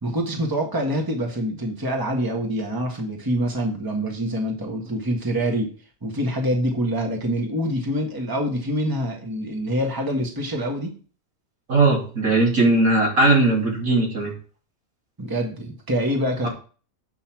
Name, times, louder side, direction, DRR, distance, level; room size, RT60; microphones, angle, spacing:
voice 1, 0.0-5.7 6.0-10.9 15.2-16.5, equal, 15° right, 1 dB, 1.7 m, -25 dB
voice 2, 11.7-14.3 16.4-16.5, right 2 dB, 70° right, -2 dB, 3.4 m, -19 dB
8.4 x 5.6 x 6.0 m, 0.39 s
omnidirectional pair, 1.5 m